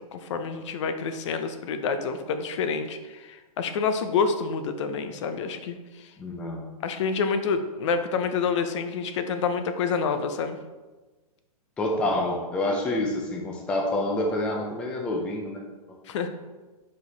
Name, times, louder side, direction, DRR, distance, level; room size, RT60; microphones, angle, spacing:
voice 1, 0.0-5.8 6.8-10.6 16.1-16.3, left 5 dB, 50° left, 9 dB, 0.6 m, -28 dB
voice 2, 6.2-6.7 11.8-15.6, left 1 dB, 5° left, 0 dB, 0.3 m, -27 dB
5.1 x 4.7 x 4.0 m, 1.2 s
hypercardioid pair, 150°, 20 cm